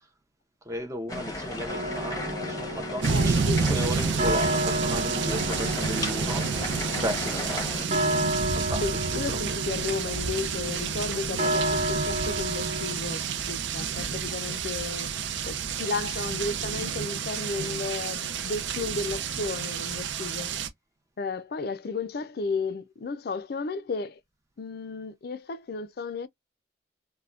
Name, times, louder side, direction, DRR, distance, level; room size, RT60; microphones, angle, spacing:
voice 1, 0.7-9.6, equal, 15° right, 0.5 m, -35 dB
sound 1, 1.1-7.9, left 2 dB, 20° left, 0.7 m, -35 dB
sound 2, 1.7-12.9, right 1 dB, 35° right, 0.9 m, -32 dB
sound 3, 3.0-20.7, right 6 dB, 70° right, 0.5 m, -30 dB
voice 2, 3.1-3.6 7.9-8.3 8.8-15.1 15.4-20.6 21.2-24.2 24.6-26.3, left 4 dB, 50° left, 0.4 m, -33 dB
3.4 x 2.1 x 2.3 m
head